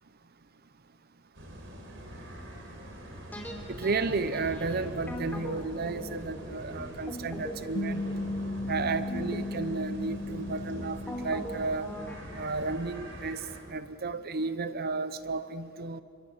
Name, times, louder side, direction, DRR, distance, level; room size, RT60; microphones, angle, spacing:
sound 1, 1.3-13.6, equal, 65° right, 4.4 m, -45 dB
sound 2, 3.3-12.2, equal, 10° left, 3.4 m, -41 dB
voice 1, 3.7-8.0 8.7-12.0 12.4-16.0, right 3 dB, 50° right, 13 dB, 0.8 m, -33 dB
sound 3, 7.7-12.4, left 2 dB, 65° left, 1.5 m, -36 dB
29.0 x 25.0 x 7.2 m, 2.4 s
head